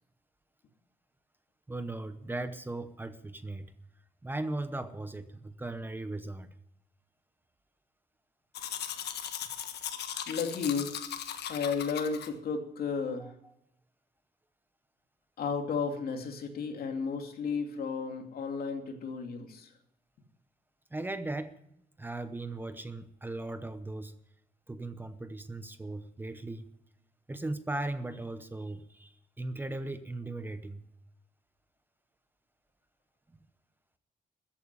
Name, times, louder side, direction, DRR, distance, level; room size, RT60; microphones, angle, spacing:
voice 1, 1.7-3.7 4.2-6.5 13.2-13.5 20.9-21.6 22.0-24.1 24.7-26.7 27.3-30.8, right 2 dB, 10° right, 11 dB, 0.8 m, -38 dB
Domestic sounds home sounds, 8.5-12.3, left 9 dB, 85° left, 1.5 m, -38 dB
voice 2, 10.3-10.9 11.5-13.3 15.4-19.7, left 5 dB, 65° left, 4 dB, 2.6 m, -33 dB
14.5 x 8.7 x 9.7 m, 0.75 s
wide cardioid pair, 165°, 17 cm